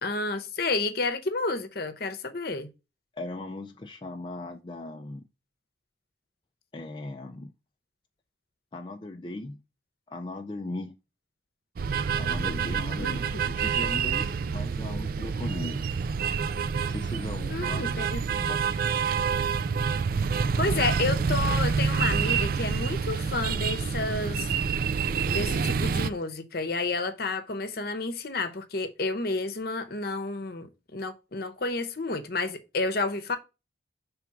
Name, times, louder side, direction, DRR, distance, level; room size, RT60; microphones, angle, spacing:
voice 1, 0.0-2.7 13.0-13.4 17.5-18.5 20.3-24.5 25.3-33.4, left 3 dB, 55° left, 0.8 m, -31 dB
voice 2, 3.1-5.3 6.7-7.5 8.7-9.6 10.1-11.0 12.2-15.9 16.9-18.2 18.5-18.6, left 2 dB, 25° left, 0.4 m, -38 dB
sound 1, 11.8-26.1, right 6 dB, 50° right, 0.3 m, -27 dB
6.0 x 3.4 x 5.8 m
head